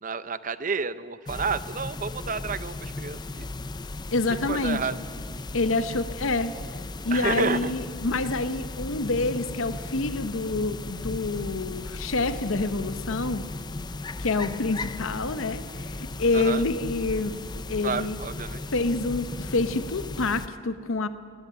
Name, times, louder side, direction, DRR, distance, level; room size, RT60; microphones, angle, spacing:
voice 1, 0.0-3.5 4.5-4.9 7.1-7.7 16.3-16.6 17.8-18.6, right 5 dB, 40° right, 14 dB, 0.6 m, -30 dB
sound 1, 1.3-20.5, left 2 dB, 20° left, 0.5 m, -36 dB
voice 2, 4.1-4.8 5.5-6.5 7.0-13.5 14.2-17.4 17.7-18.2 18.7-21.1, left 3 dB, 80° left, 11 dB, 0.8 m, -27 dB
17.0 x 16.5 x 9.4 m, 2.1 s
head